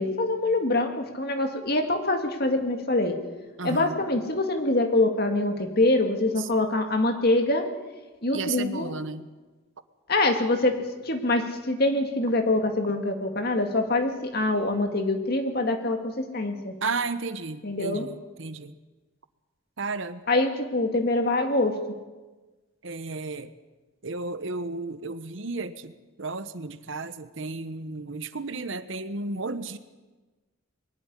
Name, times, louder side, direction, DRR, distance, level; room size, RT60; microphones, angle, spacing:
voice 1, 0.0-3.2 3.6-7.7 8.2-8.9 10.1-10.8 11.0-16.8 17.6-18.1 20.3-21.8, left 2 dB, 45° left, 5 dB, 2.2 m, -24 dB
voice 2, 3.6-4.0 6.4-6.5 8.3-9.3 16.8-18.8 19.8-20.2 22.8-23.5 24.0-25.9 26.2-29.8, right 3 dB, 60° right, 12 dB, 1.0 m, -33 dB
22.0 x 12.0 x 9.9 m, 1.2 s
head